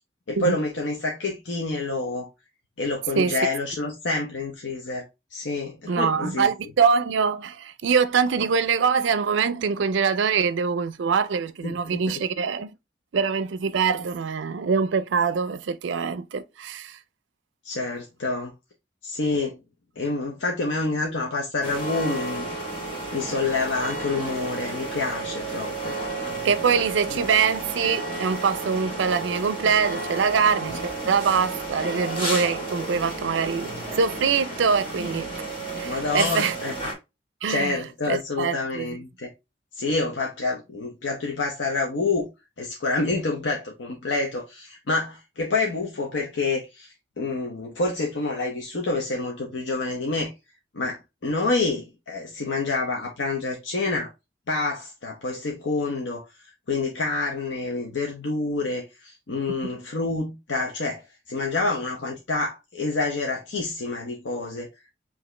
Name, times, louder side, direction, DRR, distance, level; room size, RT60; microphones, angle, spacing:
voice 1, 0.3-2.3 2.8-5.0 5.3-6.5 11.6-12.0 17.6-18.5 19.0-19.6 20.0-22.5 23.1-26.0 27.1-27.2 35.8-36.7 37.5-39.3 39.8-42.3 42.6-50.3 50.7-54.1 54.5-56.2 56.7-64.7, left 3 dB, 85° left, 0.8 m, -28 dB
voice 2, 5.9-12.7 13.1-17.0 26.4-35.3 35.8-36.6 37.4-37.8 38.1-38.9, right 6 dB, 80° right, 0.4 m, -24 dB
sound 1, 21.6-36.9, right 2 dB, 30° left, 1.3 m, -32 dB
4.8 x 2.8 x 3.2 m
head